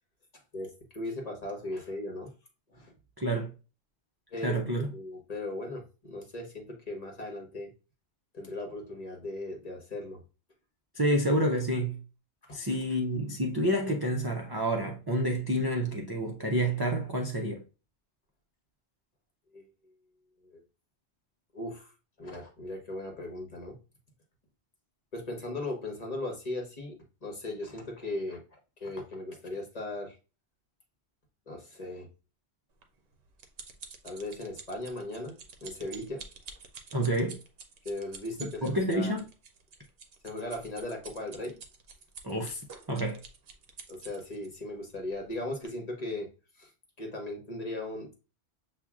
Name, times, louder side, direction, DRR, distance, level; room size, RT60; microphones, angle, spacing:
voice 1, 0.5-2.3 2.7-2.9 4.3-4.6 4.9-7.7 8.3-10.2 12.5-12.6 19.5-19.7 20.4-20.6 21.5-21.9 22.2-23.7 25.1-26.9 27.2-28.4 28.8-30.2 31.5-32.1 34.0-35.3 35.6-36.2 37.8-39.2 40.2-41.6 43.9-46.3 46.6-46.7 47.0-48.1, left 2 dB, 40° left, 1.1 m, -38 dB
voice 2, 3.2-3.5 4.4-4.9 10.9-12.0 12.5-17.6 36.9-37.4 38.4-39.3 42.2-42.6 42.9-43.2, equal, 30° right, 0.4 m, -29 dB
sound 1, 32.8-44.5 45.1-45.3 45.6-45.7, right 5 dB, 65° right, 0.9 m, -48 dB
7.1 x 2.5 x 2.3 m
omnidirectional pair, 1.1 m